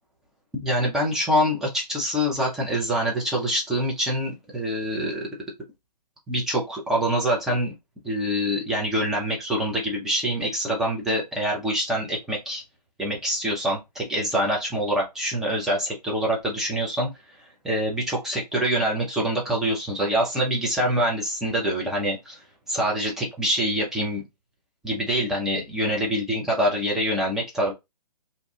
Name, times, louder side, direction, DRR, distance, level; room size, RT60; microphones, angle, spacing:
voice 1, 0.5-5.3 6.3-7.7 8.0-12.6 13.0-17.1 17.6-22.4 22.7-24.2 24.8-27.7, equal, ahead, -3 dB, 0.4 m, -25 dB
2.6 x 2.2 x 2.7 m, 0.22 s
figure-of-eight pair, 135°, 21 cm